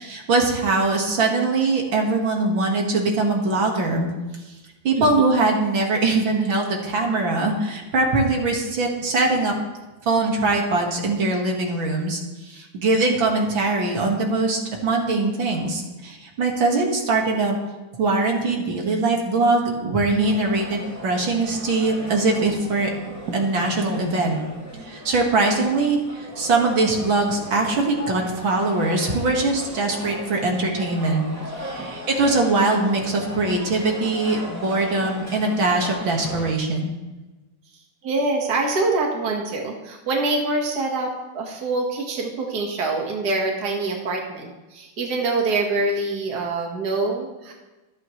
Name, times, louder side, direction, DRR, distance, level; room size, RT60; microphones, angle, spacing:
voice 1, 0.0-4.1 4.8-9.5 10.0-17.6 18.0-22.9 23.3-24.4 24.8-31.3 31.6-36.9, right 3 dB, 75° right, 0 dB, 2.6 m, -22 dB
sound 1, 20.2-36.5, left 1 dB, 10° right, 2.7 m, -37 dB
voice 2, 38.0-47.5, right 3 dB, 55° right, 0 dB, 2.2 m, -25 dB
25.5 x 8.7 x 3.2 m, 1.1 s
omnidirectional pair, 2.2 m